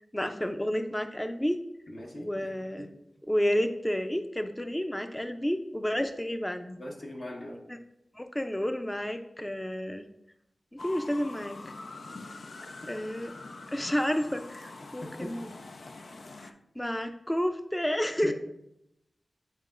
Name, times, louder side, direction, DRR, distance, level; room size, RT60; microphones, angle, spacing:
voice 1, 0.1-1.6 2.2-2.9 3.3-6.8 7.7-7.8 8.1-10.1 10.7-11.7 12.9-13.3 13.7-15.6 16.4-18.3, equal, 15° left, 7 dB, 0.5 m, -31 dB
voice 2, 1.9-2.5 2.8-2.9 6.8-7.6 15.2-15.3 18.2-18.3, left 1 dB, 60° left, -2 dB, 1.1 m, -39 dB
sound 1, 10.8-16.5, left 3 dB, 75° left, 0.5 m, -44 dB
9.2 x 4.6 x 2.5 m, 0.82 s
cardioid pair, 45°, 0 cm